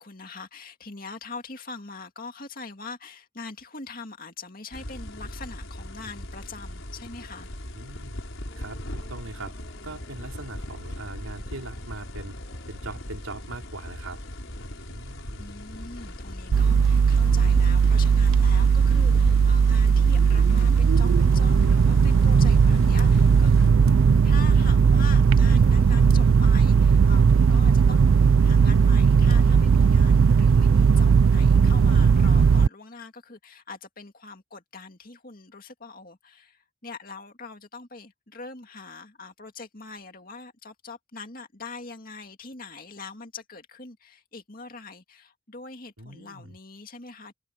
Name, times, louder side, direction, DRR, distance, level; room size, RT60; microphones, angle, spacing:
voice 1, 0.0-7.5 15.4-28.1 28.4-47.3, left 3 dB, 40° left, 2.4 m, -42 dB
sound 1, 4.7-23.7, left 1 dB, 65° left, 5.4 m, -39 dB
voice 2, 7.7-8.2 8.6-9.5 9.8-12.4 12.7-14.2 14.9-15.5 46.0-46.6, right 2 dB, 85° right, 5.1 m, -40 dB
sound 2, 8.5-26.6, equal, 20° left, 2.9 m, -43 dB
sound 3, 16.5-32.7, right 6 dB, 70° right, 0.4 m, -18 dB
head